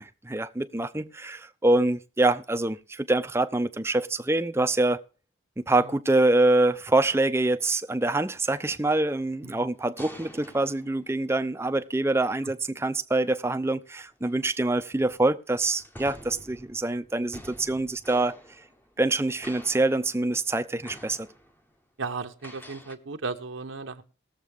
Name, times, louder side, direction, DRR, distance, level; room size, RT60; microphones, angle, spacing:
voice 1, 0.0-5.0 5.7-18.4 19.0-21.3, right 2 dB, 15° right, 0.5 m, -25 dB
sound 1, 9.2-11.7 13.1-13.3 14.1-15.1 15.6-19.2 19.4-20.5 20.8-21.8 22.4-22.9, equal, 10° left, 0.8 m, -48 dB
voice 2, 22.0-24.0, right 4 dB, 80° right, 0.9 m, -35 dB
19.5 x 7.4 x 3.4 m
head